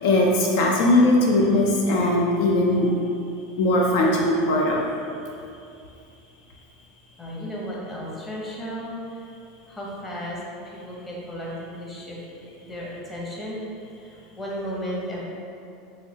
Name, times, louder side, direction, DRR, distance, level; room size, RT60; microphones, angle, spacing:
voice 1, 0.0-2.9 3.6-4.8, left 1 dB, 70° left, -1 dB, 0.4 m, -19 dB
voice 2, 7.2-9.2 9.7-10.4 10.7-12.2 12.6-13.6 14.0-15.2, equal, 15° left, -5 dB, 0.7 m, -34 dB
3.0 x 2.7 x 2.8 m, 2.6 s
supercardioid pair, 115°, 0 cm